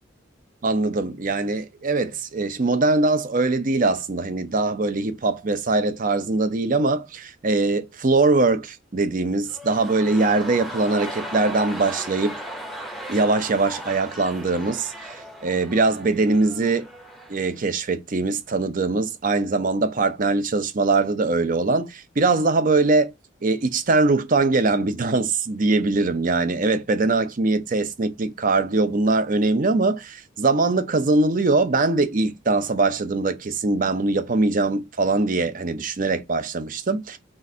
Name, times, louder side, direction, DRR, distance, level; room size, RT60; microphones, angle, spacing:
voice 1, 0.6-12.4 13.1-16.9 17.3-23.1 23.4-37.2, right 3 dB, 45° right, 0.6 m, -22 dB
sound 1, 9.4-17.5 17.8-17.9, equal, ahead, 0.7 m, -37 dB
3.9 x 2.5 x 4.1 m
head